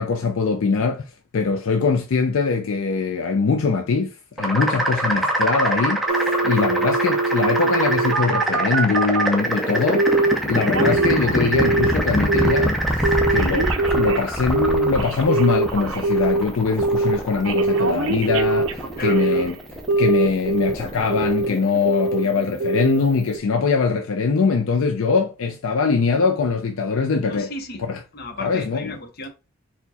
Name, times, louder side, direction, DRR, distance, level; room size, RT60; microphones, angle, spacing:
voice 1, 0.0-19.5 20.0-27.5 27.9-28.0 28.4-28.8, left 4 dB, 70° left, 0.4 m, -22 dB
sound 1, 4.4-23.1, right 1 dB, ahead, 0.6 m, -25 dB
Telephone, 6.1-9.4 10.0-10.3 10.6-12.0 12.3-12.7 13.0-16.4 16.8-17.2 17.4-19.5 19.9-20.7 21.1-21.5 21.9-22.2 22.6-23.0 23.4-23.5, right 3 dB, 65° right, 0.5 m, -22 dB
voice 2, 19.0-19.5 27.3-27.8 28.1-29.3, left 2 dB, 45° left, 0.7 m, -34 dB
4.5 x 2.2 x 4.0 m
head